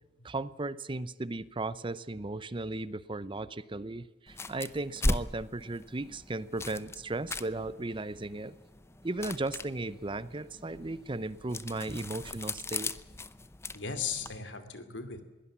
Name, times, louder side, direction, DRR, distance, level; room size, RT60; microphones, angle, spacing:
voice 1, 0.2-8.6 9.0-12.9, right 2 dB, 30° right, 17 dB, 0.7 m, -36 dB
sound 1, 4.3-14.4, left 2 dB, 15° left, 0.7 m, -38 dB
voice 2, 13.7-15.2, left 6 dB, 90° left, 10 dB, 2.7 m, -37 dB
22.0 x 17.0 x 7.4 m, 1.1 s
head